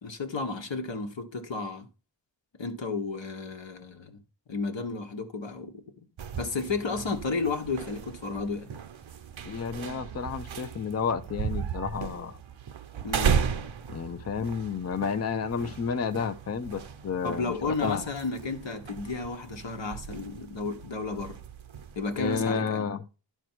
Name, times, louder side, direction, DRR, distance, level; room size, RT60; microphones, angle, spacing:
voice 1, 0.0-1.9 2.6-4.2 4.5-5.8 6.3-8.7 13.0-13.4 17.2-21.4 21.9-22.9, left 3 dB, 75° left, 1.3 m, -32 dB
sound 1, 6.2-22.5, right 7 dB, 80° right, 0.7 m, -36 dB
voice 2, 9.4-12.4 13.9-18.1 22.2-23.0, left 6 dB, 35° left, 0.5 m, -31 dB
11.0 x 4.6 x 4.4 m
wide cardioid pair, 60°, 45 cm